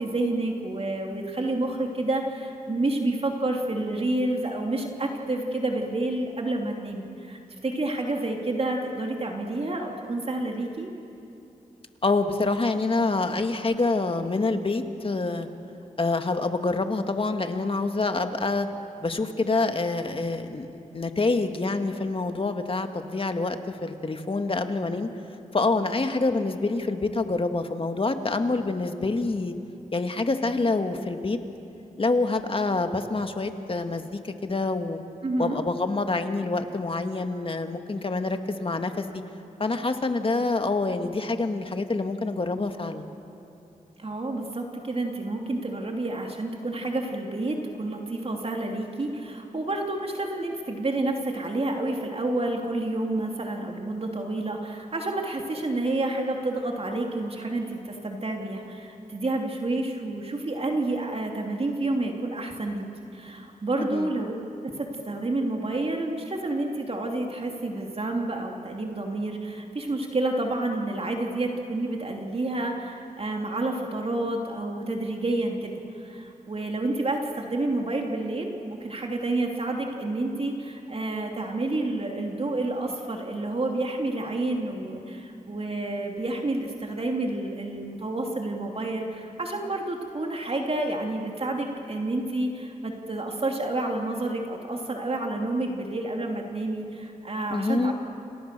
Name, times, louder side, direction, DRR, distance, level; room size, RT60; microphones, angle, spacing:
voice 1, 0.0-10.9 35.2-35.6 44.0-62.9 63.1-64.3 64.6-97.9, right 2 dB, 40° right, 1 dB, 2.9 m, -29 dB
voice 2, 12.0-15.5 16.0-18.7 19.0-20.7 20.9-25.1 25.5-29.5 29.9-31.4 32.0-35.0 35.4-39.1 39.6-43.1 63.8-64.1 97.5-97.9, left 3 dB, 40° left, 6 dB, 1.9 m, -26 dB
30.0 x 28.0 x 6.9 m, 2.8 s
cardioid pair, 75°, 15 cm